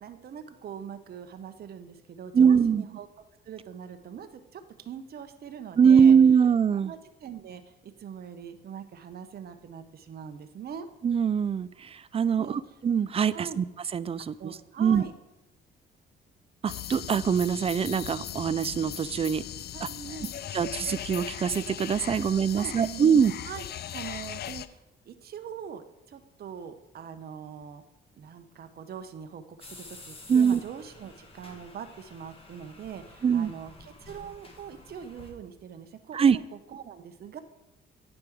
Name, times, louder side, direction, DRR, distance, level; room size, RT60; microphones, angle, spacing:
voice 1, 0.0-3.1 3.5-6.2 6.8-10.9 12.4-12.8 13.3-13.6 14.4-15.1 19.7-20.3 22.3-23.1 23.4-23.6 23.9-27.8 28.2-36.2 36.5-37.4, right 7 dB, 50° right, 8 dB, 0.7 m, -42 dB
voice 2, 2.3-2.8 5.8-6.9 11.0-13.6 13.9-15.0 16.6-19.4 19.8-19.9 20.5-23.3 30.3-30.6 33.2-33.5 36.1-36.4, right 7 dB, 30° right, 17 dB, 0.3 m, -23 dB
sound 1, 16.7-24.7, left 11 dB, 55° left, 0.4 m, -38 dB
sound 2, 29.6-35.3, left 2 dB, 30° left, 1.7 m, -50 dB
9.8 x 5.2 x 4.6 m, 0.92 s
cardioid pair, 90°, 20 cm